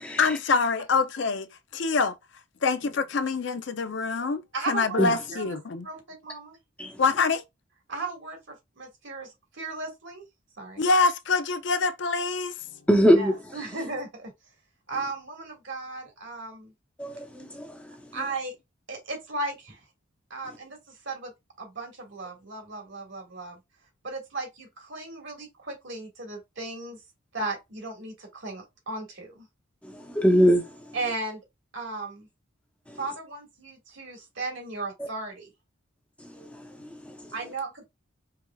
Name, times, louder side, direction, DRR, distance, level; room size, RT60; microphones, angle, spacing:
voice 1, 0.2-1.4 1.7-2.2 2.6-5.9 7.0-7.4 10.8-12.5, left 4 dB, 60° left, 0.5 m, -25 dB
voice 2, 4.5-5.0 5.3-5.6 5.8-6.6 7.9-10.2 10.6-10.8 13.2-14.3 14.9-16.7 18.1-18.5 18.9-19.8 20.3-21.3 21.6-23.6 24.0-27.0 27.3-29.5 30.9-31.4 31.7-32.3 33.0-35.5 37.3-37.9, right 3 dB, 65° right, 1.7 m, -36 dB
voice 3, 12.9-13.4 17.0-17.7 29.8-30.6 36.3-37.2, equal, 5° left, 0.8 m, -22 dB
4.7 x 3.4 x 2.3 m
head